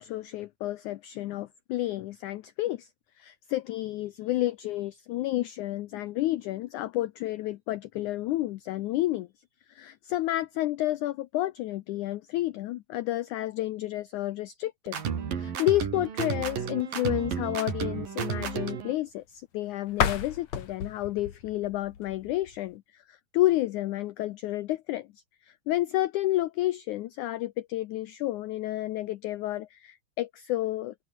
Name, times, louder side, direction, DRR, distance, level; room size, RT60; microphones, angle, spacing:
voice 1, 0.0-2.9 3.2-9.3 9.7-15.0 15.4-25.1 25.4-30.9, left 16 dB, 90° left, 1.7 m, -30 dB
sound 1, 14.9-18.9, right 7 dB, 65° right, 4.8 m, -32 dB
sound 2, 19.9-22.8, left 8 dB, 50° left, 3.1 m, -32 dB
open air
omnidirectional pair, 4.4 m